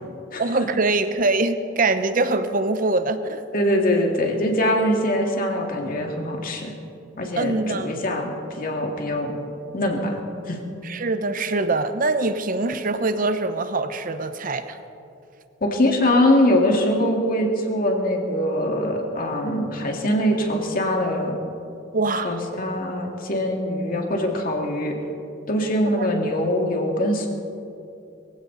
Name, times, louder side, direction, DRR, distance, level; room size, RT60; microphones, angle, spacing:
voice 1, 0.4-3.4 7.4-7.9 10.8-14.8 21.9-22.3 26.0-26.1, right 3 dB, 45° right, 10 dB, 0.8 m, -23 dB
voice 2, 3.5-6.7 7.2-9.4 9.7-10.2 10.5-10.6 15.6-21.4 22.2-24.9 25.5-27.3, left 1 dB, 45° left, 1 dB, 2.3 m, -23 dB
23.0 x 15.5 x 4.0 m, 2.7 s
head